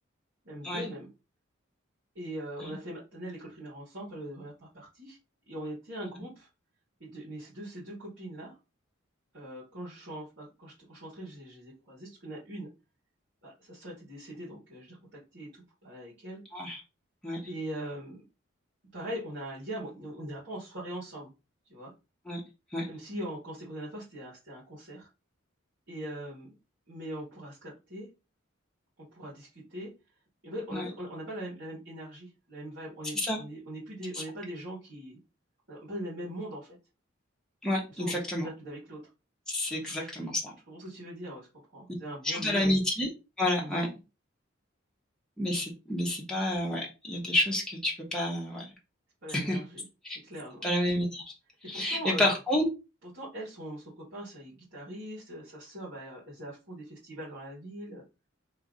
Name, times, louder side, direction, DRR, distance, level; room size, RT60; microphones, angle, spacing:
voice 1, 0.4-1.1 2.1-5.2 5.5-6.5 7.0-8.6 9.3-12.7 13.4-16.4 17.5-18.2 18.9-21.3 21.7-21.9 22.9-25.1 25.9-26.6 26.9-28.1 29.1-29.9 30.4-35.2 35.7-36.8 37.9-39.1 39.7-40.1 40.7-42.7 43.6-43.9 49.2-50.7 51.6-52.3 53.0-58.0, right 1 dB, 65° right, -8 dB, 2.1 m, -41 dB
voice 2, 37.6-38.5 39.5-40.5 42.2-43.1 43.4-43.9 45.4-48.7 49.3-49.6 50.0-50.2 50.6-51.2 51.7-52.7, left 1 dB, 5° left, -3 dB, 1.1 m, -29 dB
3.4 x 3.2 x 3.8 m, 0.28 s
head